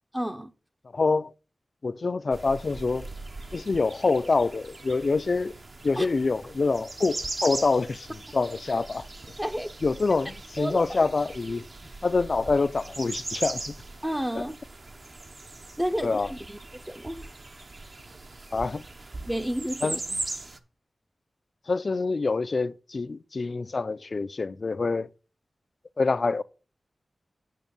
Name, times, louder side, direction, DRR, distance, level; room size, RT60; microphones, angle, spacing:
voice 1, 0.1-0.5 6.0-6.1 9.4-9.7 10.6-11.0 14.0-14.6 15.8-16.6 16.9-17.3 19.3-20.0, equal, 10° right, 0.6 m, -31 dB
voice 2, 0.9-1.3 1.8-3.1 3.5-5.5 5.8-8.1 8.3-9.1 9.8-11.7 12.0-13.7 14.4-14.5 16.0-16.3 18.5-18.8 19.8-20.0 21.7-25.1 26.0-26.4, left 3 dB, 55° left, 0.4 m, -26 dB
sound 1, 2.3-20.6, right 2 dB, 50° right, 0.9 m, -39 dB
9.1 x 5.6 x 5.3 m
wide cardioid pair, 80°, 0 cm